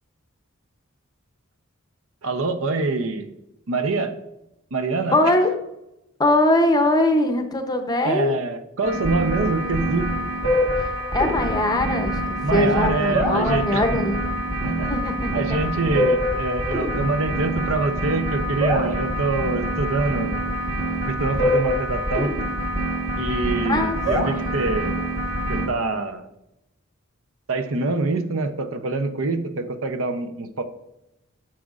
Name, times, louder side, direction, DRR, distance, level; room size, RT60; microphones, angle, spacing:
voice 1, 2.2-3.3 3.7-4.1 4.7-5.3 8.0-10.1 12.4-13.8 14.6-14.9 15.3-20.4 21.0-22.3 23.2-25.0 25.5-26.3 27.5-30.6, right 3 dB, 70° right, 9 dB, 0.6 m, -25 dB
voice 2, 5.1-5.5 6.2-8.3 11.1-14.3 14.9-15.6 23.6-24.0 24.2-24.7, left 1 dB, 20° left, 6 dB, 0.6 m, -21 dB
sound 1, 8.8-25.7, equal, 35° right, 1.3 m, -25 dB
10.0 x 6.2 x 2.4 m, 0.89 s
head